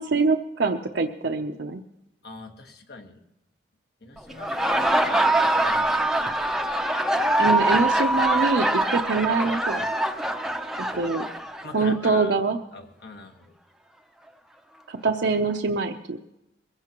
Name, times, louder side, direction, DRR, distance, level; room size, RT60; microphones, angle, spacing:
voice 1, 0.0-1.8 7.4-9.9 10.9-11.3 11.7-12.6 14.9-16.2, right 4 dB, 70° right, 4 dB, 0.7 m, -24 dB
voice 2, 2.2-3.2 4.0-6.4 11.1-11.2 11.6-12.4 12.7-13.6, left 3 dB, 60° left, 4 dB, 1.5 m, -42 dB
Laughter, 4.3-11.9, right 1 dB, ahead, 0.6 m, -23 dB
22.0 x 15.5 x 3.0 m, 0.89 s
head